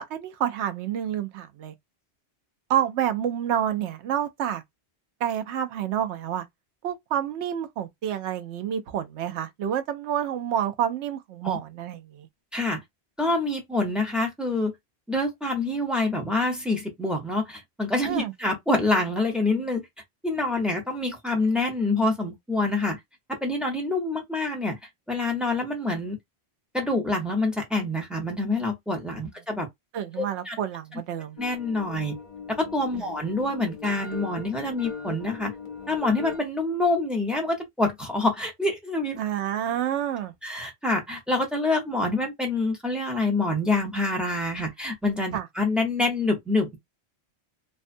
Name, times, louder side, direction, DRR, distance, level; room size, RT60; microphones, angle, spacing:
voice 1, 0.0-1.7 2.7-4.6 5.2-6.5 6.8-12.3 18.1-18.3 29.9-31.4 33.0-33.1 39.2-40.3 45.3-45.5, right 10 dB, 85° right, 0.9 m, -28 dB
voice 2, 13.2-14.7 15.1-19.8 20.2-23.0 23.4-24.8 25.1-26.2 26.7-29.7 30.2-30.6 31.4-32.1 32.6-35.5 35.9-39.2 40.4-46.8, left 2 dB, ahead, 0.7 m, -26 dB
sound 1, 31.4-36.4, left 6 dB, 45° left, 0.8 m, -39 dB
2.6 x 2.3 x 2.5 m
omnidirectional pair, 1.1 m